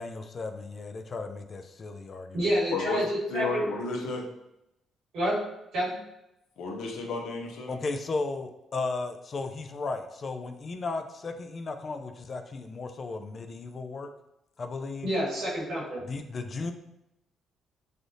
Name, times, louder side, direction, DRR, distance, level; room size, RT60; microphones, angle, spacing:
voice 1, 0.0-2.4 7.7-14.1 14.6-15.1 16.0-16.7, left 3 dB, 40° left, 7 dB, 0.3 m, -35 dB
voice 2, 2.3-3.6 5.1-5.4 5.7-5.9 15.0-16.0, equal, 80° right, -6 dB, 1.4 m, -28 dB
voice 3, 3.3-4.2 6.6-7.8, left 4 dB, 80° left, 1 dB, 0.6 m, -32 dB
3.3 x 2.4 x 2.6 m, 0.85 s
cardioid pair, 90°, 0 cm